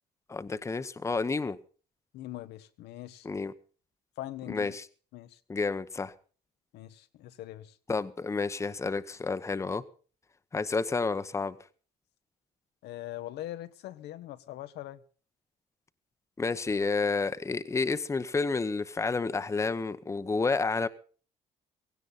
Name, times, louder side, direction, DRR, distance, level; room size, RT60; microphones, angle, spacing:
voice 1, 0.3-1.6 3.2-3.5 4.5-4.8 5.5-6.1 7.9-9.8 10.5-11.6 16.4-20.9, left 4 dB, 15° left, 0.8 m, -30 dB
voice 2, 2.1-3.3 4.2-4.8 5.1-5.4 6.7-7.8 12.8-15.0, left 14 dB, 80° left, 1.1 m, -42 dB
17.0 x 16.5 x 4.1 m
cardioid pair, 110°, 17 cm